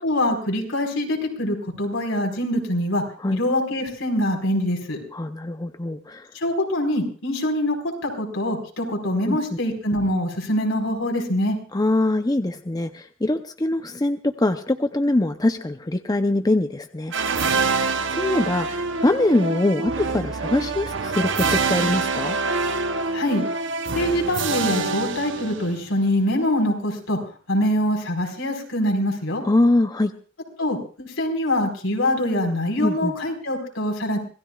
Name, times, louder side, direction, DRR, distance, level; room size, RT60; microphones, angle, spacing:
voice 1, 0.0-3.0 3.3-5.0 6.3-11.6 23.1-23.4 23.9-27.2 27.5-29.4 30.6-34.2, left 1 dB, 80° left, 2 dB, 4.8 m, -24 dB
voice 2, 5.1-6.3 9.3-9.4 11.7-17.6 18.1-22.4 29.4-30.1 32.8-33.1, left 2 dB, 20° left, 7 dB, 0.7 m, -23 dB
sound 1, 17.1-26.0, right 4 dB, 65° right, 1.0 m, -25 dB
26.0 x 18.0 x 2.4 m, 0.40 s
head